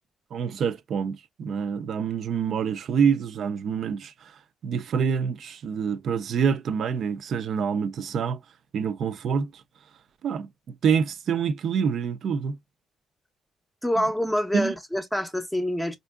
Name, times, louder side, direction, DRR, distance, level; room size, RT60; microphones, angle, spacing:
voice 1, 0.3-4.1 4.6-8.4 8.7-9.5 10.2-10.5 10.8-12.6 14.0-14.1 14.5-14.7, right 6 dB, 65° right, 0.4 m, -26 dB
voice 2, 13.8-16.0, equal, 5° left, 0.5 m, -26 dB
4.3 x 2.5 x 2.2 m
cardioid pair, 90°, 0 cm